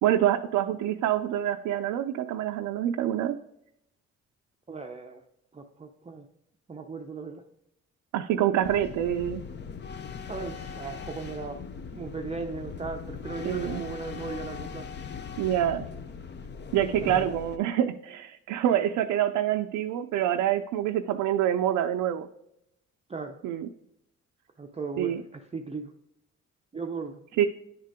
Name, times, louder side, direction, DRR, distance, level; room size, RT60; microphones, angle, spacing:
voice 1, 0.0-3.4 8.1-9.4 13.4-13.8 15.4-15.8 16.7-22.3 23.4-23.7 25.0-25.2 27.4-27.5, right 11 dB, 85° right, 4 dB, 0.5 m, -26 dB
voice 2, 4.7-5.2 5.5-6.3 6.7-7.4 10.3-11.6 11.9-14.9 17.0-17.4 23.1-23.4 24.6-25.9 26.7-27.4, right 4 dB, 20° right, 2 dB, 0.5 m, -37 dB
sound 1, 8.6-17.6, left 6 dB, 35° left, 0.6 m, -40 dB
9.6 x 3.7 x 3.5 m, 0.79 s
cardioid pair, 90°, 30 cm